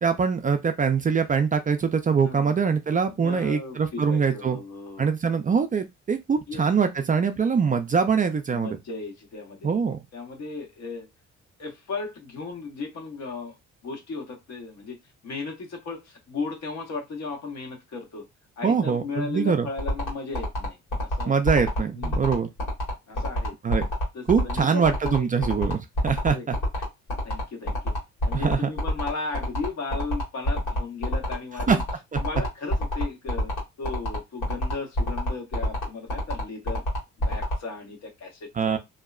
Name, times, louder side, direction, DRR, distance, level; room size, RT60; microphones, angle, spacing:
voice 1, 0.0-4.6 5.0-8.8 9.6-10.0 18.6-19.7 21.3-22.5 23.6-23.8 24.3-26.6 28.3-28.7 31.7-31.8 32.1-32.2 38.6-38.8, right 6 dB, 30° right, 0.4 m, -23 dB
voice 2, 2.2-2.5 3.2-5.1 6.5-6.7 8.5-9.7 10.1-11.1 11.6-13.6 13.8-15.0 15.2-18.2 18.6-21.3 21.9-22.4 23.1-23.5 24.1-25.5 26.3-26.5 27.2-27.9 28.2-31.8 32.2-33.5 33.8-36.8 37.3-38.8, left 4 dB, 60° left, 1.1 m, -35 dB
sound 1, 19.8-37.5, equal, 90° left, 1.6 m, -26 dB
2.7 x 2.1 x 2.3 m
cardioid pair, 90°, 30 cm